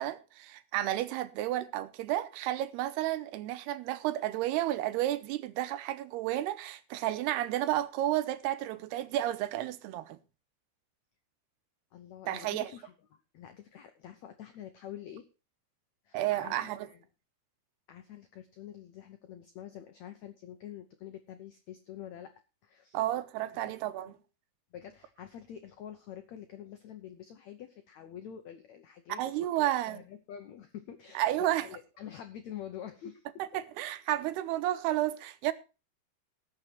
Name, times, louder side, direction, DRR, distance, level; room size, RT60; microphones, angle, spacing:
voice 1, 0.0-10.2 12.3-12.7 16.1-16.9 22.9-24.2 29.2-30.0 31.2-31.7 33.4-35.5, right 14 dB, 90° right, 2.9 m, -32 dB
voice 2, 11.9-12.9 13.3-15.2 16.0-16.6 16.9-17.0 17.9-22.3 22.6-23.0 23.6-23.7 24.0-24.2 24.7-33.3, left 10 dB, 85° left, 1.5 m, -47 dB
19.0 x 6.6 x 4.5 m
omnidirectional pair, 4.6 m